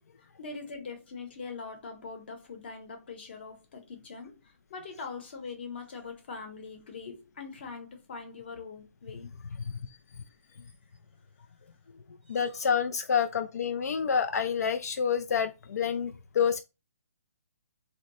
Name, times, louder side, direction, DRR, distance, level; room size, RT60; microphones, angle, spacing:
voice 1, 0.2-9.3 12.3-12.4, left 4 dB, 40° left, 0.8 m, -42 dB
voice 2, 9.6-10.0 12.3-16.6, left 7 dB, 80° left, 0.3 m, -28 dB
2.7 x 2.1 x 4.0 m
hypercardioid pair, 170°, 8 cm